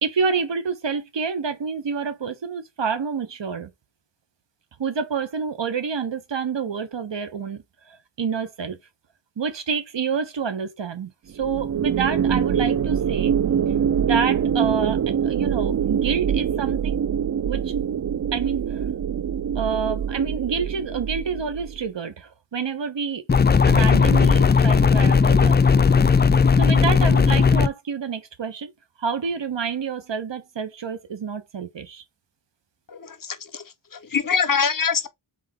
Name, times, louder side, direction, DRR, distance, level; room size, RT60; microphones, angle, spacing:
voice 1, 0.0-3.7 4.8-8.8 9.4-13.3 14.0-17.0 17.5-17.7 18.3-18.9 19.5-23.2 23.6-25.8 26.6-28.7 29.0-32.0, right 5 dB, 70° right, 1.0 m, -28 dB
sound 1, 11.4-21.8, right 8 dB, 45° right, 0.4 m, -24 dB
sound 2, 23.3-27.7, left 5 dB, 25° left, 0.4 m, -16 dB
voice 2, 32.9-35.1, left 6 dB, 45° left, 0.8 m, -25 dB
3.8 x 3.7 x 3.6 m
cardioid pair, 50°, 46 cm